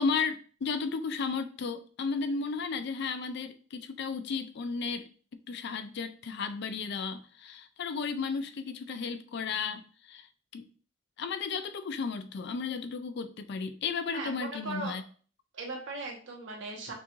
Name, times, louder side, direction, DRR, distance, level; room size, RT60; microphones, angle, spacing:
voice 1, 0.0-5.1 5.5-10.3 10.5-10.7 11.2-15.0, left 5 dB, 60° left, 0.4 m, -34 dB
voice 2, 14.1-15.0 15.5-16.9, right 3 dB, 65° right, 1.2 m, -38 dB
6.1 x 2.5 x 3.0 m
head